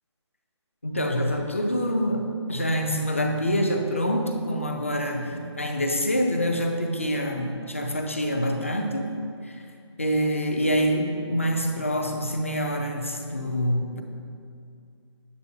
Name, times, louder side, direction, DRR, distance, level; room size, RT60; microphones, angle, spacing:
voice 1, 0.8-9.1 9.4-9.5 10.0-14.0, equal, 25° left, 3 dB, 0.5 m, -26 dB
10.5 x 8.1 x 2.7 m, 2.4 s
hypercardioid pair, 180°, 15 cm